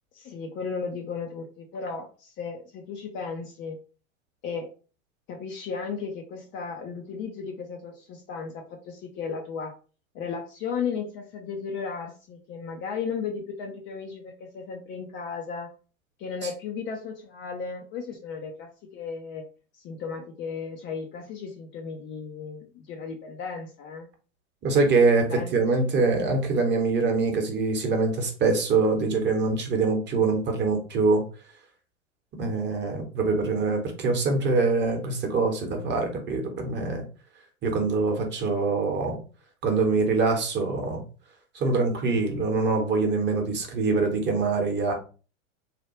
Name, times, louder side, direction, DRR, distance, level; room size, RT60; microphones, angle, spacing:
voice 1, 0.1-3.8 4.4-4.7 5.3-9.7 10.1-15.7 16.2-19.5 19.8-24.1 25.3-25.7 42.0-42.3, left 5 dB, 30° left, 3 dB, 0.5 m, -35 dB
voice 2, 24.6-31.2 32.4-37.0 37.6-39.2 39.6-41.0 41.5-44.9, right 3 dB, 25° right, 3 dB, 1.0 m, -24 dB
3.2 x 2.3 x 3.0 m, 0.37 s
figure-of-eight pair, 90°, 40 cm